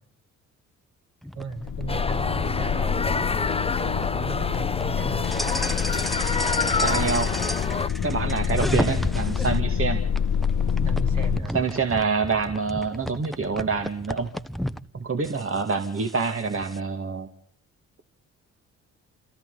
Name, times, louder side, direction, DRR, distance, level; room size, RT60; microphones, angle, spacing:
sound 1, 1.2-9.6 10.1-14.8 15.2-16.8, equal, ahead, 1.2 m, -33 dB
voice 1, 1.3-3.0 3.8-5.3 10.8-11.6, right 4 dB, 55° right, 2 dB, 4.8 m, -36 dB
sound 2, 1.6-11.4, left 7 dB, 55° left, 1.3 m, -27 dB
sound 3, 1.9-7.9, left 3 dB, 15° left, 0.9 m, -28 dB
voice 2, 6.8-7.3 8.0-10.0 11.5-14.3 14.9-17.3, right 4 dB, 35° right, 5 dB, 2.4 m, -26 dB
29.5 x 27.0 x 4.2 m, 0.63 s
hypercardioid pair, 50°, 36 cm